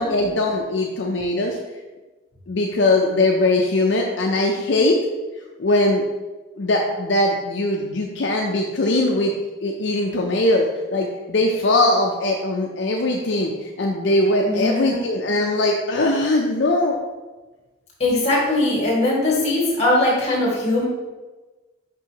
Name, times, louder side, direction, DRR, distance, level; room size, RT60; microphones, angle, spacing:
voice 1, 0.0-1.6 2.5-5.0 5.6-6.0 6.6-9.3 9.6-10.7 10.9-17.0, left 2 dB, 70° left, 0 dB, 0.5 m, -20 dB
voice 2, 14.4-15.0 18.0-20.9, left 1 dB, 35° left, -4 dB, 1.9 m, -20 dB
5.9 x 5.5 x 2.9 m, 1.2 s
head